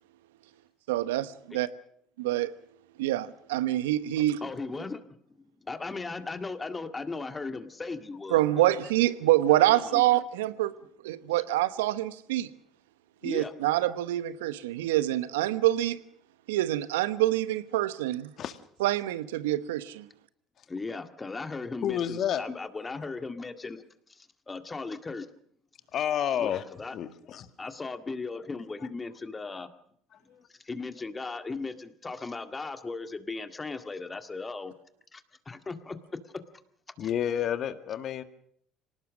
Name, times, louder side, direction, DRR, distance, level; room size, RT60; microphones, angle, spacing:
voice 1, 0.9-1.7 2.2-2.5 3.0-4.4 8.3-10.7 11.0-12.5 13.2-16.0 16.5-18.3 18.8-20.1, right 15 dB, 80° right, 1.1 m, -26 dB
voice 2, 4.4-5.0 5.3-8.7 9.6-10.0 13.2-13.5 20.7-23.8 24.1-25.3 26.4-27.0 27.6-29.7 30.5-34.7 35.1-36.0 37.0-37.1 37.7-37.8, left 3 dB, 25° left, 2.0 m, -37 dB
voice 3, 21.8-22.4 25.9-26.6 26.9-27.5 30.3-30.4 37.0-38.2, left 9 dB, 55° left, 1.9 m, -30 dB
26.0 x 18.5 x 6.4 m
hypercardioid pair, 65°, 0 cm